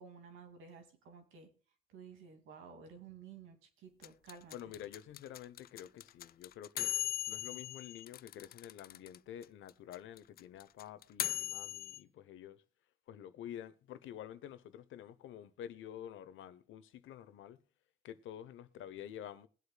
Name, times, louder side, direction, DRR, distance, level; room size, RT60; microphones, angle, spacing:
voice 1, 0.0-1.5 1.9-4.5, right 6 dB, 85° right, 2.4 m, -53 dB
sound 1, 4.0-9.2 9.4-9.5 9.7-12.0, left 12 dB, 50° left, 0.4 m, -38 dB
voice 2, 4.5-12.6 13.1-17.6 18.0-19.5, left 10 dB, 80° left, 1.0 m, -49 dB
22.0 x 8.3 x 2.3 m
cardioid pair, 90°, 20 cm